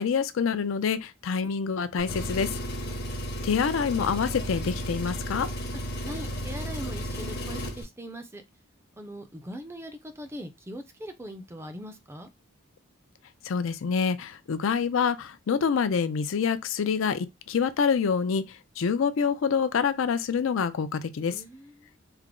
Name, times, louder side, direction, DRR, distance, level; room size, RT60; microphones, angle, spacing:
voice 1, 0.0-2.5 3.4-5.5 13.5-21.3, left 6 dB, 75° left, 0.4 m, -26 dB
Engine, 2.0-7.8, equal, 50° left, 0.8 m, -33 dB
voice 2, 6.0-8.4 9.0-12.3 21.3-21.9, equal, 10° right, 0.4 m, -41 dB
3.3 x 2.0 x 3.6 m
head